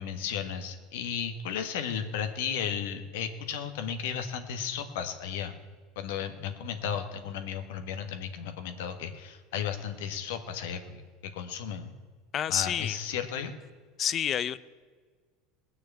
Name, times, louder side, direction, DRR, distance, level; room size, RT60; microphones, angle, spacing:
voice 1, 0.0-5.5 5.9-11.9 12.5-13.5, left 8 dB, 80° left, 7 dB, 1.5 m, -34 dB
voice 2, 12.3-13.0 14.0-14.6, left 9 dB, 35° left, 17 dB, 0.5 m, -28 dB
18.5 x 6.3 x 8.5 m, 1.5 s
supercardioid pair, 120°, 0 cm